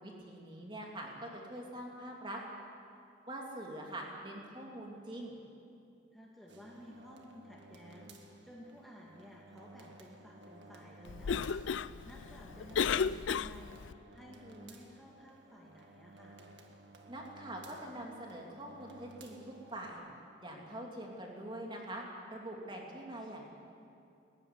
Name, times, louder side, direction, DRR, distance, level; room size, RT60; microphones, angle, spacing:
voice 1, 0.0-2.4 3.3-5.4 17.1-20.0 20.4-23.5, right 1 dB, 25° right, -1 dB, 3.0 m, -44 dB
voice 2, 0.5-0.9 6.1-16.4, equal, ahead, -4 dB, 1.9 m, -54 dB
sound 1, 6.5-19.9, right 2 dB, 70° right, 1.8 m, -56 dB
Cough, 11.0-13.9, left 6 dB, 85° left, 0.4 m, -34 dB
19.5 x 14.5 x 9.7 m, 2.6 s
head